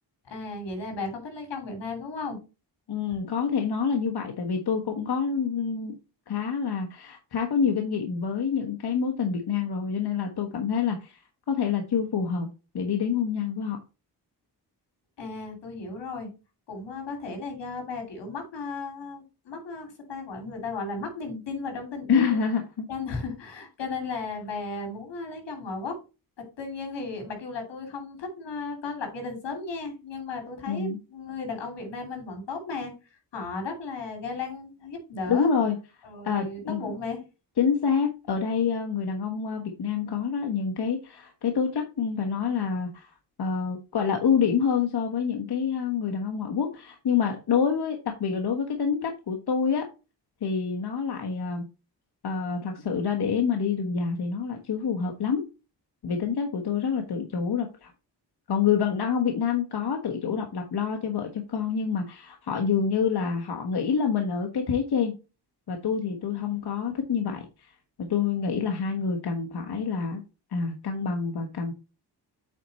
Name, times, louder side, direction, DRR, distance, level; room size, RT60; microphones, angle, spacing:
voice 1, 0.3-2.4 15.2-16.3 16.7-22.4 22.9-26.0 26.4-32.9 33.3-35.5 36.0-37.2, left 3 dB, 85° left, 4 dB, 2.8 m, -35 dB
voice 2, 2.9-6.0 6.3-11.2 11.5-12.5 12.7-13.8 22.1-22.9 30.7-31.0 35.3-35.8 36.2-36.9 37.6-43.1 43.4-49.9 50.4-51.6 52.2-55.5 56.0-57.9 58.5-65.1 65.7-67.7 68.0-70.2 70.5-71.7, left 6 dB, 65° left, 3 dB, 1.3 m, -27 dB
8.2 x 4.3 x 4.1 m, 0.30 s
cardioid pair, 75°, 42 cm